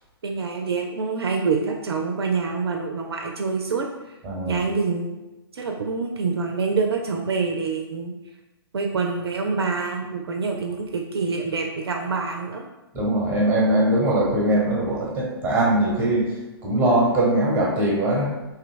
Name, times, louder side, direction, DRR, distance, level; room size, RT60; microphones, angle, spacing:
voice 1, 0.2-3.9 4.5-5.2 5.5-8.1 8.7-12.7, right 4 dB, 65° right, 2 dB, 0.4 m, -26 dB
voice 2, 4.2-4.6 12.9-16.3 16.6-18.3, right 1 dB, 15° right, -4 dB, 1.1 m, -21 dB
2.7 x 2.2 x 3.8 m, 1.0 s
figure-of-eight pair, 125°, 14 cm